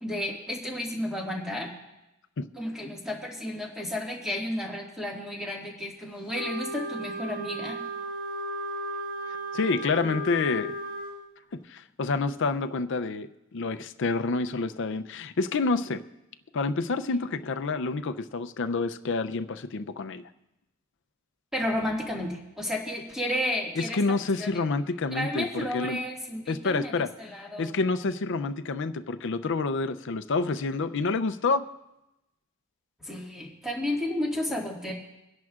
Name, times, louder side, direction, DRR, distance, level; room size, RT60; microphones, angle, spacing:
voice 1, 0.0-1.7 2.5-7.8 21.5-24.5 25.1-27.7 33.0-34.9, left 1 dB, ahead, -2 dB, 1.9 m, -32 dB
Wind instrument woodwind instrument, 6.3-11.2, right 1 dB, 90° right, 2.2 m, -35 dB
voice 2, 9.5-10.8 11.5-16.0 16.5-20.2 23.8-25.5 25.7-26.0 26.5-27.1 27.6-31.7, left 3 dB, 60° left, 10 dB, 0.5 m, -28 dB
23.5 x 10.5 x 2.4 m, 0.92 s
head